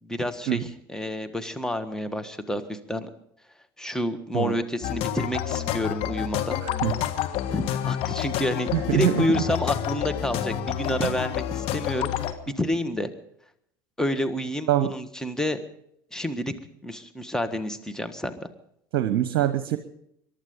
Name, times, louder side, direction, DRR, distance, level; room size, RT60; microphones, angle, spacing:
voice 1, 0.0-3.1 3.8-6.6 7.5-12.1 12.6-13.1 14.0-15.6 16.1-16.5 16.8-18.5, left 1 dB, 5° left, 8 dB, 1.6 m, -29 dB
sound 1, 4.8-12.3, left 11 dB, 55° left, 1.5 m, -29 dB
voice 2, 6.6-6.9 8.7-9.4 11.0-11.1 14.7-14.9 18.9-19.8, right 12 dB, 65° right, 10 dB, 1.0 m, -24 dB
23.0 x 11.5 x 5.4 m, 0.73 s
hypercardioid pair, 70°, 12 cm